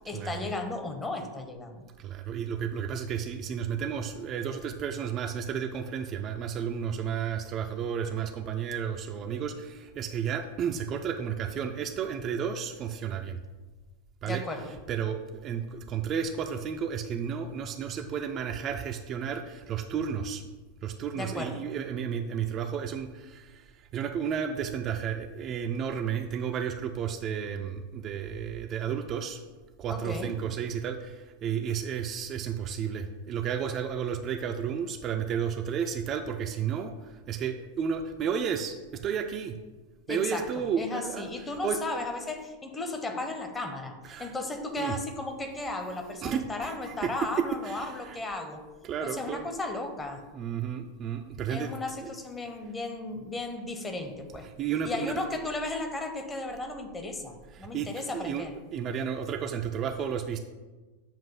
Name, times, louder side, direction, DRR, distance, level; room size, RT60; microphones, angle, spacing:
voice 1, 0.0-1.8 14.2-14.7 21.1-21.6 29.9-30.3 40.1-48.6 49.0-50.2 51.5-54.5 54.8-58.5, left 2 dB, 15° left, 6 dB, 0.8 m, -35 dB
voice 2, 2.0-13.4 14.2-14.4 14.9-20.4 20.8-29.4 29.8-39.6 40.1-41.3 41.6-41.8 44.1-44.3 44.8-44.9 46.2-47.1 47.6-48.2 48.8-49.5 50.3-51.7 52.0-52.2 54.6-55.1 57.5-58.5 58.7-60.4, right 7 dB, 30° right, 5 dB, 0.4 m, -32 dB
7.3 x 2.6 x 5.4 m, 1.2 s
figure-of-eight pair, 90°, 0 cm